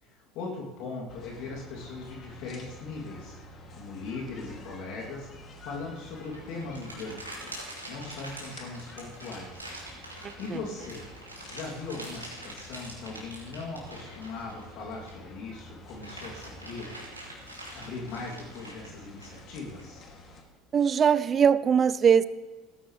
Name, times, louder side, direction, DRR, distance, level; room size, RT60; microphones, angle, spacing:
voice 1, 0.0-3.4 3.7-5.3 5.6-7.5 7.9-9.7 10.4-11.0 11.5-16.9 17.7-20.0, left 3 dB, 50° left, -3 dB, 2.9 m, -39 dB
sound 1, 1.1-20.4, left 1 dB, 35° left, 2.7 m, -49 dB
sound 2, 6.0-15.3 15.7-19.8, right 1 dB, 85° right, 3.1 m, -44 dB
voice 2, 10.2-10.6 20.7-22.2, right 7 dB, 30° right, 17 dB, 0.5 m, -22 dB
17.5 x 15.5 x 3.3 m, 1.2 s
figure-of-eight pair, 65°, 0 cm